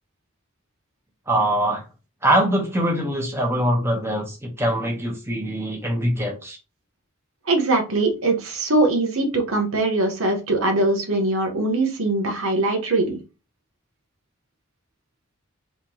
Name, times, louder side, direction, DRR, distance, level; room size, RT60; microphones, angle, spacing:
voice 1, 1.3-1.8 2.2-6.6, right 1 dB, 10° right, 0 dB, 1.0 m, -23 dB
voice 2, 7.5-13.2, right 2 dB, 90° right, 3 dB, 1.1 m, -21 dB
3.6 x 3.3 x 2.9 m, 0.31 s
head